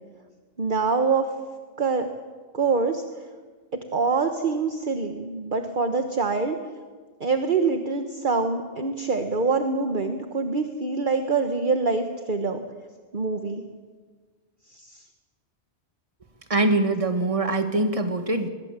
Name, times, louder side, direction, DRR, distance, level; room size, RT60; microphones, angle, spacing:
voice 1, 0.6-1.3 1.8-2.1 2.5-3.0 3.9-6.6 7.2-12.6 13.1-13.6 14.7-15.0, right 4 dB, 45° right, 6 dB, 1.4 m, -25 dB
voice 2, 16.5-18.5, right 2 dB, 30° right, 6 dB, 1.9 m, -23 dB
23.5 x 21.5 x 7.5 m, 1.5 s
omnidirectional pair, 1.1 m